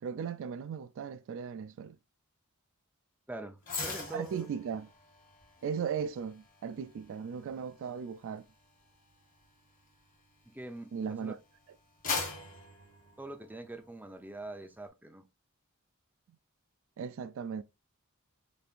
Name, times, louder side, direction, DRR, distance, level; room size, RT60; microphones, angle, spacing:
voice 1, 0.0-2.0 4.1-4.9 5.6-8.5 10.9-11.4 17.0-17.6, right 7 dB, 60° right, 0.3 m, -37 dB
voice 2, 3.3-4.5 10.5-11.4 13.2-15.3, right 2 dB, 10° right, 0.6 m, -44 dB
sound 1, 3.6-11.0 11.5-13.9 14.2-14.4, left 4 dB, 40° left, 1.5 m, -42 dB
5.2 x 3.3 x 2.5 m
head